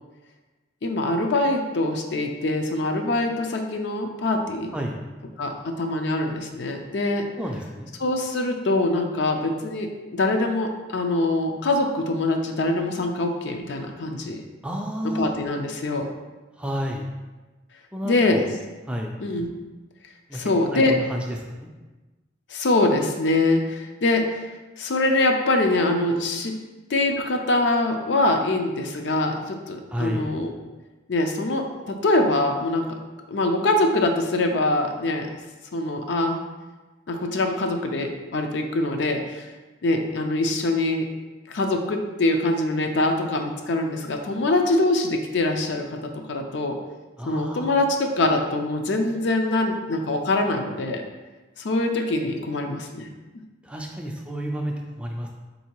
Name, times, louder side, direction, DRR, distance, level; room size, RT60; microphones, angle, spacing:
voice 1, 0.8-4.7 5.4-7.2 8.0-14.4 15.2-16.1 18.0-18.4 19.2-19.5 20.3-21.0 22.5-24.5 24.8-26.5 26.9-30.5 31.1-32.9 33.3-35.3 35.7-36.4 37.1-39.5 39.8-41.1 41.5-46.8 47.3-51.0 51.6-53.1, left 2 dB, 65° left, 4 dB, 0.5 m, -24 dB
voice 2, 7.4-7.9 14.6-15.3 16.6-17.1 17.9-18.5 18.9-19.1 20.3-20.4 20.7-21.7 29.9-30.3 47.2-47.8 53.6-55.3, equal, 5° right, 0 dB, 0.3 m, -30 dB
3.8 x 2.7 x 4.4 m, 1.2 s
head